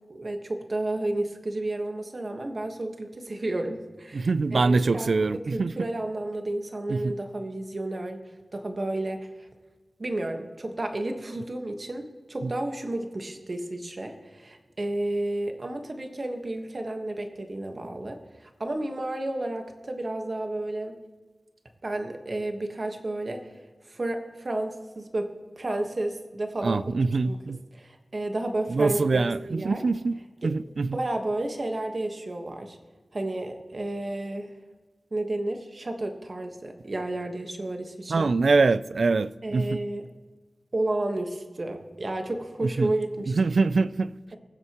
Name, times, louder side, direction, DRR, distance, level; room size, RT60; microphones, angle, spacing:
voice 1, 0.1-8.2 8.5-9.5 10.0-20.9 21.8-23.5 23.9-25.3 25.6-26.8 27.2-27.4 27.7-29.8 30.4-30.5 30.9-32.8 33.1-34.5 35.1-38.3 39.4-40.1 40.7-43.4, right 1 dB, 45° right, 1.3 m, -32 dB
voice 2, 4.1-5.7 6.9-7.2 12.4-12.5 26.6-27.6 28.7-31.0 38.1-39.8 42.6-42.9 43.3-44.4, right 3 dB, 75° right, 0.3 m, -24 dB
21.0 x 7.7 x 3.0 m
wide cardioid pair, 95°, 0 cm